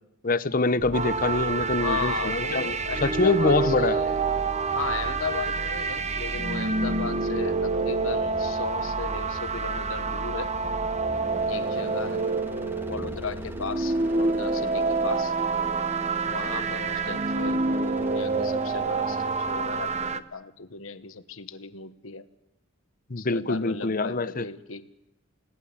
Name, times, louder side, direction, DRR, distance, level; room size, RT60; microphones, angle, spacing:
voice 1, 0.2-2.7 3.0-4.0 23.1-24.5, left 3 dB, 45° left, 0.9 m, -25 dB
sound 1, 0.8-20.1, equal, 10° right, 1.6 m, -39 dB
sound 2, 0.9-20.2, right 4 dB, 35° right, 0.9 m, -28 dB
voice 2, 1.8-4.2 4.7-10.5 11.5-12.2 12.9-15.3 16.3-22.2 23.2-24.9, left 5 dB, 80° left, 1.3 m, -36 dB
30.0 x 17.5 x 8.7 m
head